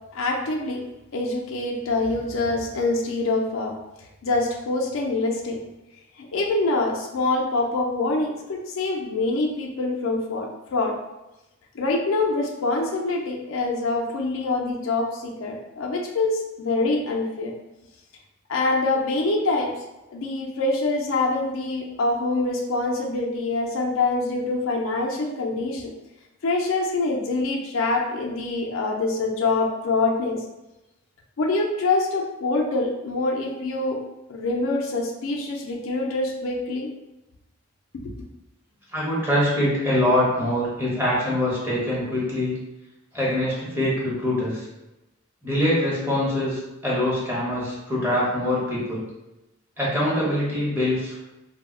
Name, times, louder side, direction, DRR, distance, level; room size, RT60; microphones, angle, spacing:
voice 1, 0.1-0.8 1.1-3.7 4.2-5.6 6.2-11.0 11.7-17.5 18.5-19.7 20.1-25.9 26.4-30.4 31.4-34.0 34.3-36.9 37.9-38.2, left 2 dB, 75° left, 0 dB, 0.4 m, -25 dB
voice 2, 38.9-42.6 43.1-44.6 45.4-49.0 49.8-51.2, left 1 dB, 10° right, -7 dB, 0.8 m, -24 dB
2.3 x 2.0 x 3.6 m, 0.98 s
head